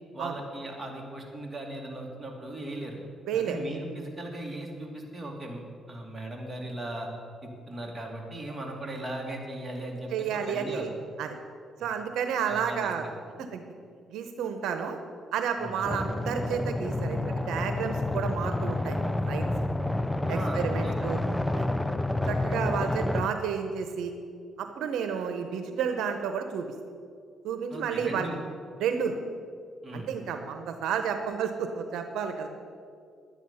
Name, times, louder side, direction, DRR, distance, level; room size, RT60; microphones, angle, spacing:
voice 1, 0.1-3.0 3.3-7.1 7.4-10.9 12.5-13.1 15.6-15.8 20.3-21.1 27.7-28.4 29.8-30.1, right 1 dB, 15° right, -1 dB, 2.5 m, -38 dB
voice 2, 3.3-3.6 10.1-10.9 11.2-11.4 11.8-13.0 13.4-13.6 14.1-15.0 15.3-19.0 19.3-19.5 20.3-21.2 21.6-21.7 22.2-24.1 24.6-26.7 27.4-28.3 28.8-29.2 29.9-32.5, right 7 dB, 85° right, 7 dB, 0.8 m, -31 dB
sound 1, 15.8-23.3, left 1 dB, 10° left, 0.5 m, -29 dB
11.0 x 9.4 x 5.6 m, 2.2 s
cardioid pair, 85°, 0 cm